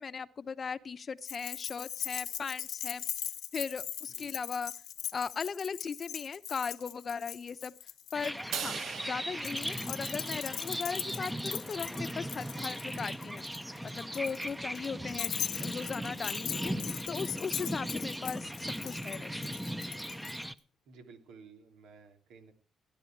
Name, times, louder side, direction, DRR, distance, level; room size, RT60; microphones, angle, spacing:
voice 1, 0.0-3.0 3.5-4.7 5.1-7.7 8.1-8.8 9.1-13.5 13.8-16.7 17.1-19.5, left 5 dB, 45° left, 0.8 m, -38 dB
Keys jangling, 1.2-8.7 9.4-20.4, left 10 dB, 75° left, 1.1 m, -40 dB
sound 1, 8.1-20.5, equal, 5° right, 0.8 m, -38 dB
Crash cymbal, 8.5-10.9, right 8 dB, 70° right, 1.2 m, -41 dB
voice 2, 20.8-22.5, right 5 dB, 85° right, 3.0 m, -54 dB
17.0 x 10.5 x 4.6 m
cardioid pair, 90°, 0 cm